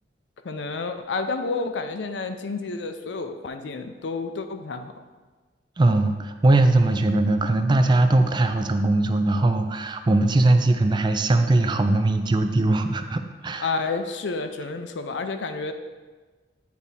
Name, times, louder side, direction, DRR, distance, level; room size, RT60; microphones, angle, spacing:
voice 1, 0.4-4.9 13.6-15.7, left 4 dB, 85° left, 7 dB, 0.5 m, -30 dB
voice 2, 5.8-13.7, right 2 dB, 25° right, 7 dB, 0.4 m, -20 dB
8.3 x 3.5 x 4.2 m, 1.3 s
head